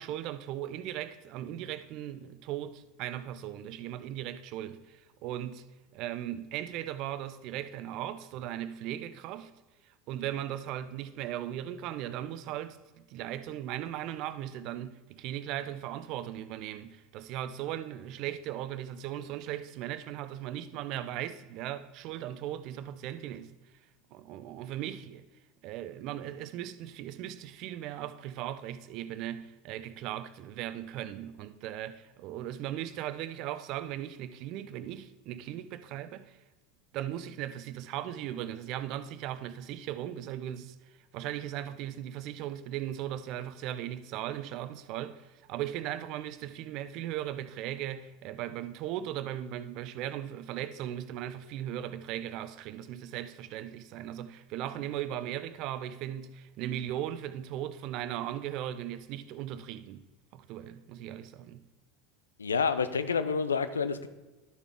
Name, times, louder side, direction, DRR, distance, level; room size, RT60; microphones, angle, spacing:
voice 1, 0.0-5.6 5.9-9.5 9.8-23.5 24.1-25.2 25.6-36.4 36.9-60.0 60.3-61.6, right 12 dB, 50° right, 0.5 m, -38 dB
voice 2, 62.4-64.1, left 5 dB, 80° left, 0.5 m, -28 dB
12.0 x 6.7 x 3.5 m
figure-of-eight pair, 75°, 0 cm